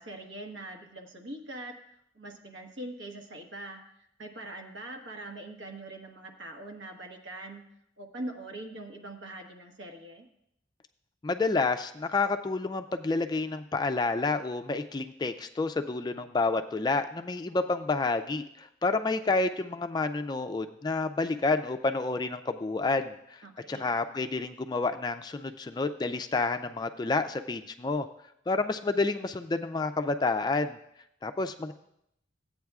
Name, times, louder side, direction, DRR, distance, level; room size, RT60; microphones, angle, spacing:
voice 1, 0.0-1.7 2.1-3.8 4.2-7.6 8.0-10.3 23.4-23.9, right 1 dB, 80° right, 2 dB, 1.3 m, -42 dB
voice 2, 11.2-23.4 23.7-28.1 28.5-30.8 31.2-31.7, left 3 dB, 20° left, 8 dB, 0.3 m, -29 dB
15.0 x 8.6 x 2.4 m, 0.76 s
head